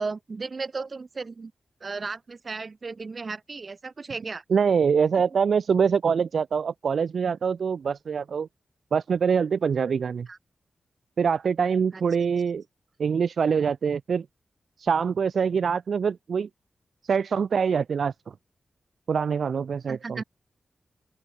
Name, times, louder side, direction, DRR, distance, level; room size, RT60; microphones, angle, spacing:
voice 1, 0.0-1.5 1.8-4.4 10.3-10.4 11.9-12.0 19.9-20.2, right 4 dB, 40° right, 2.8 m, -35 dB
voice 2, 4.5-8.5 8.9-10.3 11.2-12.6 13.0-14.3 14.8-16.5 17.0-18.3 19.1-20.2, right 6 dB, 70° right, 0.4 m, -24 dB
wide cardioid pair, 120°, 0 cm